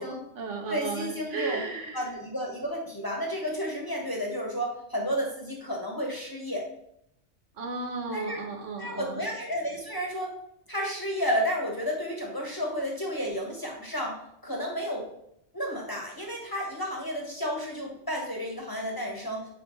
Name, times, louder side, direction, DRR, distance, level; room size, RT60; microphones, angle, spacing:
voice 1, 0.0-2.1 7.6-9.2, right 4 dB, 70° right, 3 dB, 1.4 m, -35 dB
voice 2, 0.7-1.6 1.9-6.6 8.1-8.4 8.8-10.3 10.7-14.2 14.4-15.1 15.5-19.5, equal, 20° left, -1 dB, 1.2 m, -32 dB
9.4 x 3.6 x 3.1 m, 0.77 s
omnidirectional pair, 1.3 m